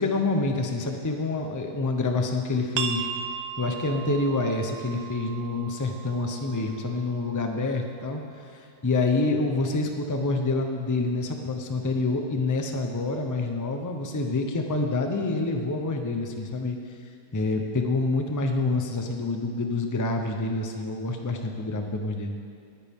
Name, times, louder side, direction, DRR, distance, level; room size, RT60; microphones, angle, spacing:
voice 1, 0.0-3.1 3.6-8.2 8.5-16.8 17.3-22.4, left 3 dB, 25° left, 4 dB, 0.4 m, -27 dB
sound 1, 2.8-8.1, right 8 dB, 65° right, 0.9 m, -37 dB
19.0 x 8.8 x 3.7 m, 2.4 s
omnidirectional pair, 1.8 m